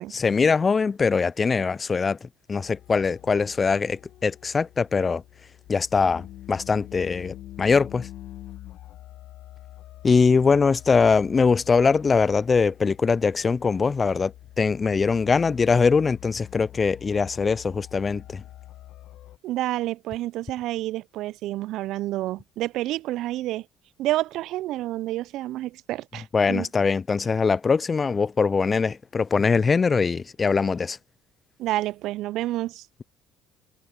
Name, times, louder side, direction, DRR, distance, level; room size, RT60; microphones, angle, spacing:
voice 1, 0.1-5.2 5.7-8.1 10.0-18.4 26.3-31.0, left 5 dB, 30° left, 0.3 m, -22 dB
sound 1, 2.6-19.4, left 13 dB, 65° left, 1.6 m, -45 dB
voice 2, 19.4-23.6 24.0-26.7 31.6-32.8, right 15 dB, 65° right, 0.4 m, -29 dB
hypercardioid pair, 65°, 0 cm